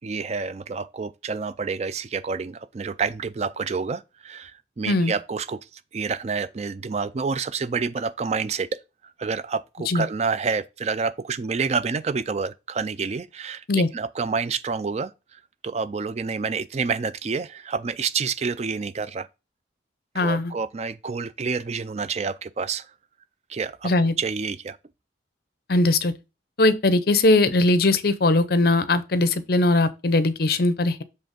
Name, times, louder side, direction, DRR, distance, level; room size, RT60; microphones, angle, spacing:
voice 1, 0.0-8.8 9.2-19.3 20.1-22.9 23.5-23.9 24.2-24.8, right 5 dB, 35° right, 0.4 m, -28 dB
voice 2, 20.1-20.5 23.8-24.1 25.7-26.1 26.6-31.0, left 2 dB, 55° left, 0.7 m, -20 dB
7.7 x 3.3 x 5.2 m
head